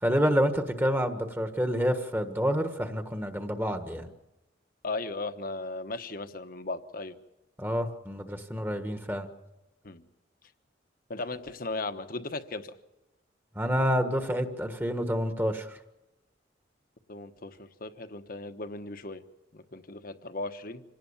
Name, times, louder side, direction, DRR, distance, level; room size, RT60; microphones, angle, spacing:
voice 1, 0.0-4.1 7.6-9.3 13.5-15.8, equal, 10° right, 7 dB, 1.5 m, -28 dB
voice 2, 4.8-7.2 9.8-10.0 11.1-12.7 17.1-19.2 19.5-20.8, left 2 dB, 50° left, 9 dB, 1.2 m, -37 dB
26.5 x 18.0 x 7.2 m, 0.98 s
head